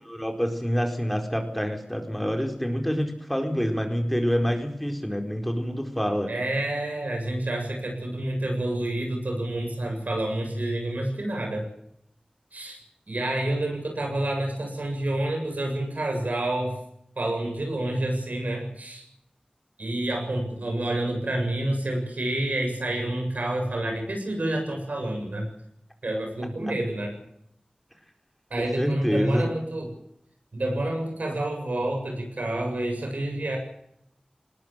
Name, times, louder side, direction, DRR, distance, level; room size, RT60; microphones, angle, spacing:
voice 1, 0.0-6.3 28.6-29.5, equal, 5° left, 4 dB, 4.3 m, -27 dB
voice 2, 6.3-11.7 12.5-12.8 13.1-16.8 17.2-19.0 19.8-25.5 26.0-27.2 28.5-29.9 30.5-33.6, right 1 dB, 85° right, 2 dB, 7.6 m, -28 dB
21.0 x 19.5 x 7.6 m, 0.76 s
wide cardioid pair, 40°, 3 cm